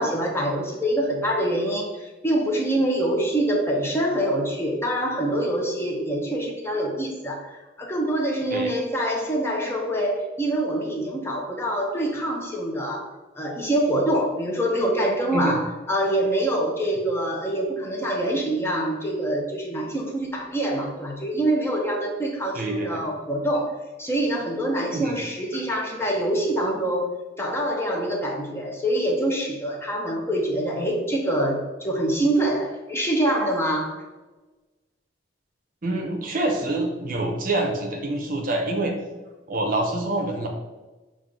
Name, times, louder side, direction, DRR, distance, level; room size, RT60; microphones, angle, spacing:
voice 1, 0.0-7.5 7.8-13.1 13.4-27.1 27.4-34.0, right 1 dB, 15° left, -1 dB, 0.7 m, -25 dB
voice 2, 22.5-23.0 24.9-25.2 25.5-26.0 35.8-39.0 39.5-40.5, right 2 dB, 50° right, 3 dB, 0.7 m, -26 dB
5.7 x 2.5 x 3.8 m, 1.2 s
head